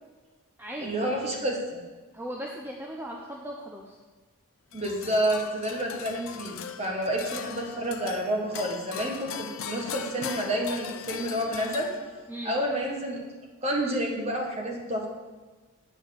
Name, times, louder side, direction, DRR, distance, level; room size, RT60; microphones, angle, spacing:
voice 1, 0.8-1.8 4.7-11.9 12.4-13.2 13.6-15.1, right 1 dB, 30° right, 0 dB, 1.4 m, -29 dB
voice 2, 2.1-4.0 12.3-12.6, equal, 10° right, -1 dB, 0.6 m, -37 dB
sound 1, 4.7-12.4, left 8 dB, 65° left, 0.5 m, -40 dB
9.1 x 4.6 x 7.6 m, 1.3 s
head